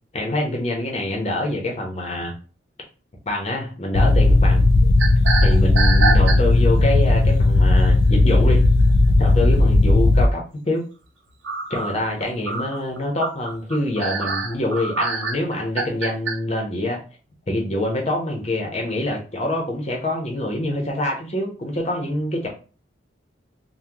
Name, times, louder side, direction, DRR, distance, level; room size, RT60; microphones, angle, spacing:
voice 1, 0.1-2.3 3.3-4.7 5.4-8.6 9.2-10.8 11.7-17.0 17.5-22.5, left 1 dB, 35° left, 0 dB, 0.8 m, -25 dB
sound 1, 3.9-10.3, left 2 dB, 55° left, 0.3 m, -15 dB
sound 2, 5.0-6.8 7.3-7.5 9.0-9.1 9.5-9.6 11.4-16.4, right 4 dB, 75° right, 0.7 m, -25 dB
2.8 x 2.2 x 3.5 m, 0.37 s
head